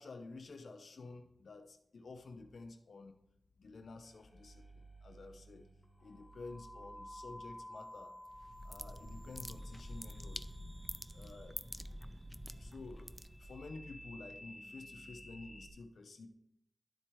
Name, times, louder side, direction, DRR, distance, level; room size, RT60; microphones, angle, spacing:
voice 1, 0.0-3.1 3.6-5.7 6.0-8.1 8.6-10.5 11.1-11.6 12.5-16.3, left 3 dB, 75° left, 6 dB, 0.7 m, -51 dB
sound 1, 4.0-15.7, equal, 20° left, 2.1 m, -54 dB
sound 2, 8.3-13.7, equal, 5° right, 0.4 m, -47 dB
11.5 x 4.4 x 4.6 m, 0.79 s
wide cardioid pair, 80°, 0 cm